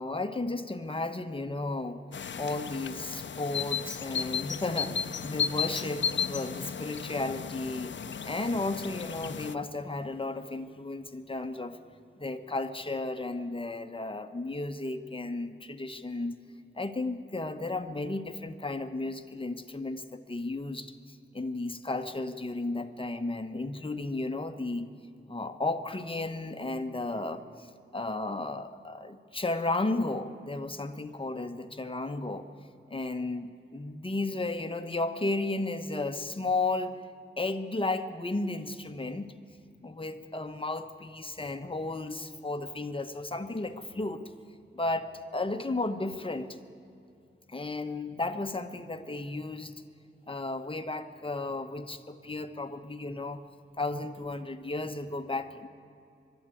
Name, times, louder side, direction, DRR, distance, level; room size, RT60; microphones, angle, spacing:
voice 1, 0.0-2.0 2.4-11.8 12.2-16.3 16.7-24.9 25.3-27.7 27.9-32.5 32.9-33.4 33.7-37.0 37.4-39.3 39.8-44.2 44.7-46.6 47.5-49.7 50.3-53.4 53.8-55.7, left 2 dB, 25° left, 8 dB, 1.1 m, -34 dB
sound 1, 2.1-9.6, left 7 dB, 65° left, 0.6 m, -34 dB
22.0 x 12.5 x 9.8 m, 2.6 s
wide cardioid pair, 110°, 20 cm